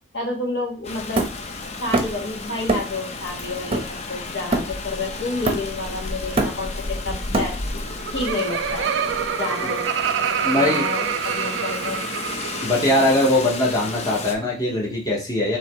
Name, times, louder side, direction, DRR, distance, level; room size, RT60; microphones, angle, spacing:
voice 1, 0.1-1.3 1.6-7.5 8.1-9.9 10.2-12.0 12.7-13.1, left 2 dB, 75° left, -1 dB, 1.6 m, -30 dB
Rain, 0.8-14.4, left 3 dB, 35° left, 0.5 m, -33 dB
Hammer, 1.2-2.3 2.7-3.0 3.4-5.0 5.5-5.9 6.2-7.9, right 2 dB, 30° right, 0.7 m, -25 dB
Laughter, 7.8-13.0, right 7 dB, 75° right, 0.3 m, -26 dB
voice 2, 10.4-10.8 12.6-15.6, left 1 dB, 20° left, -4 dB, 1.0 m, -21 dB
3.7 x 3.1 x 4.5 m, 0.34 s
head